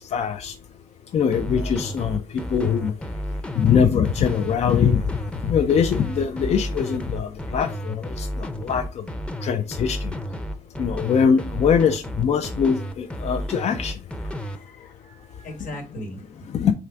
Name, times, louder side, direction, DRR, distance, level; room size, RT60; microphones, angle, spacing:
voice 1, 0.1-0.5 1.1-2.2 2.5-2.9 3.6-5.0 5.4-8.3 8.6-8.8 9.4-10.0 10.8-13.9 16.5-16.7, left 7 dB, 55° left, 7 dB, 0.4 m, -22 dB
sound 1, 1.3-14.6, equal, 10° left, 0.6 m, -31 dB
voice 2, 14.2-16.5, equal, 85° left, 3 dB, 1.3 m, -39 dB
3.7 x 3.2 x 4.4 m, 0.32 s
cardioid pair, 105°, 13 cm